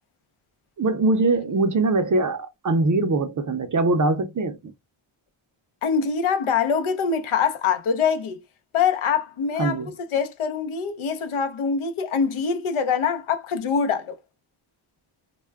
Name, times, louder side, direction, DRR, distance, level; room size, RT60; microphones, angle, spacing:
voice 1, 0.8-4.7 9.6-9.9, right 2 dB, 40° right, 0.5 m, -22 dB
voice 2, 5.8-8.4 8.7-9.8 10.1-14.2, left 6 dB, 75° left, 0.6 m, -24 dB
2.2 x 2.1 x 3.3 m
wide cardioid pair, 125°, 50 cm